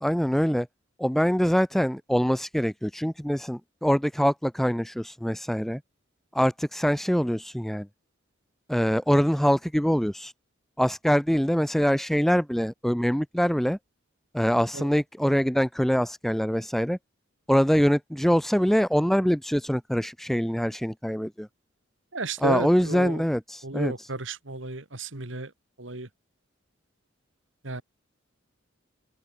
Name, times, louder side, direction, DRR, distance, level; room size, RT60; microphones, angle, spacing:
voice 1, 0.0-0.7 1.0-5.8 6.3-7.9 8.7-10.3 10.8-13.8 14.3-17.0 17.5-21.5 22.4-24.1, equal, ahead, 0.6 m, -24 dB
voice 2, 22.1-23.2 23.6-25.5 25.8-26.1 27.6-27.8, right 3 dB, 70° right, 2.4 m, -33 dB
open air
head